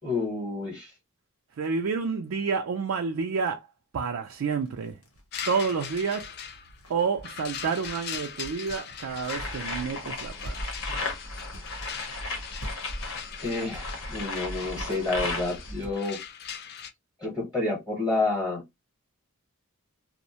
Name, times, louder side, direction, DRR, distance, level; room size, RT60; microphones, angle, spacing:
voice 1, 0.0-0.9 13.4-16.2 17.2-18.6, left 3 dB, 15° left, 0.9 m, -29 dB
voice 2, 1.6-3.7 3.9-5.0 5.5-6.3 6.9-10.5, right 5 dB, 65° right, 0.4 m, -29 dB
sound 1, 4.4-10.0 10.4-10.5 10.9-11.0 11.5-11.6 12.6-12.7 13.7-13.8 14.2-14.3 14.7-14.9 15.3-15.4 15.8-16.0 16.2-16.3, equal, 90° left, 1.0 m, -44 dB
sound 2, 5.3-16.9, left 7 dB, 50° left, 0.3 m, -41 dB
sound 3, 9.1-15.8, left 2 dB, 65° left, 0.9 m, -35 dB
2.5 x 2.1 x 2.7 m
head